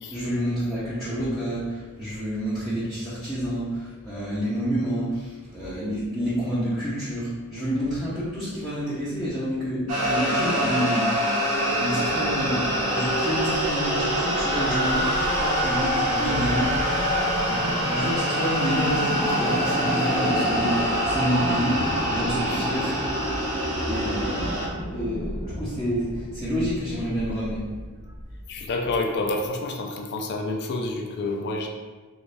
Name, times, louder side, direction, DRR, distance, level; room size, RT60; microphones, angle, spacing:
voice 1, 0.1-21.8 22.1-23.1 23.4-27.6, equal, ahead, -11 dB, 0.7 m, -29 dB
sound 1, 9.9-24.7, equal, 85° right, 1.0 m, -25 dB
sound 2, 11.7-29.4, equal, 30° right, 1.0 m, -34 dB
voice 2, 28.5-31.7, left 2 dB, 50° left, 2 dB, 0.4 m, -28 dB
3.1 x 2.7 x 3.2 m, 1.4 s
head